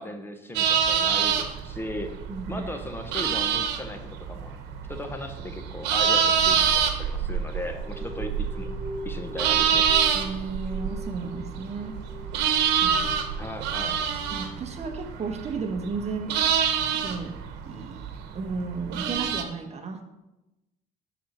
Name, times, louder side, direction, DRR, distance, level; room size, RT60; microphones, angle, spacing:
voice 1, 0.0-2.1 2.5-4.5 4.9-8.7 9.0-9.9 13.3-14.0, left 1 dB, 15° left, 5 dB, 1.0 m, -37 dB
sound 1, 0.5-19.4, right 7 dB, 90° right, 1.1 m, -26 dB
voice 2, 2.3-2.7 10.1-12.0 12.8-13.2 14.3-16.3 16.9-17.4 17.6-18.0 18.3-20.0, right 4 dB, 40° right, 6 dB, 1.3 m, -33 dB
sound 2, 7.4-14.9, left 1 dB, 85° left, 2.9 m, -43 dB
11.0 x 4.3 x 6.4 m, 0.97 s
cardioid pair, 110°, 17 cm